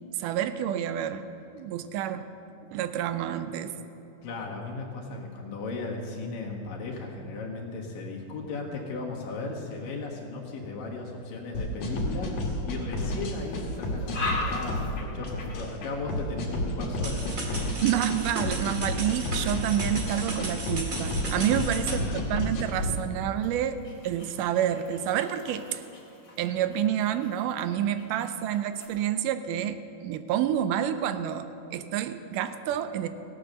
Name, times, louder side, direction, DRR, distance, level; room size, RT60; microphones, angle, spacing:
voice 1, 0.1-1.3 1.5-2.3 2.7-3.8 17.8-23.8 24.0-25.8 26.4-33.1, right 10 dB, 80° right, 11 dB, 2.1 m, -28 dB
voice 2, 4.2-17.6 21.5-21.6 21.9-22.2, left 3 dB, 85° left, -1 dB, 3.4 m, -36 dB
sound 1, 11.5-22.9, left 1 dB, 55° left, 2.8 m, -31 dB
sound 2, 12.2-12.7 13.2-19.7 20.5-20.7 21.3-28.9, left 3 dB, 25° left, 2.7 m, -42 dB
sound 3, 17.0-22.0, right 2 dB, 35° right, 1.6 m, -36 dB
17.0 x 8.8 x 6.7 m, 2.9 s
omnidirectional pair, 3.8 m